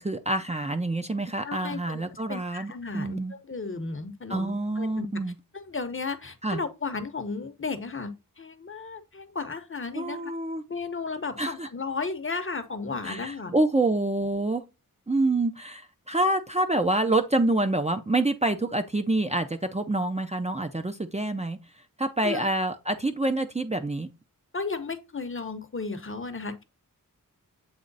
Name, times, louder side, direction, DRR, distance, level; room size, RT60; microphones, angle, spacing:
voice 1, 0.0-3.3 4.3-5.4 6.4-6.6 10.0-10.6 11.4-11.7 13.0-14.6 15.1-21.6 22.0-24.1, right 2 dB, 20° right, 0.5 m, -27 dB
voice 2, 1.4-2.0 2.3-5.2 5.5-10.3 10.7-13.5 22.2-22.4 24.5-26.6, left 4 dB, 35° left, 0.8 m, -34 dB
7.9 x 3.1 x 3.9 m
wide cardioid pair, 90°, 34 cm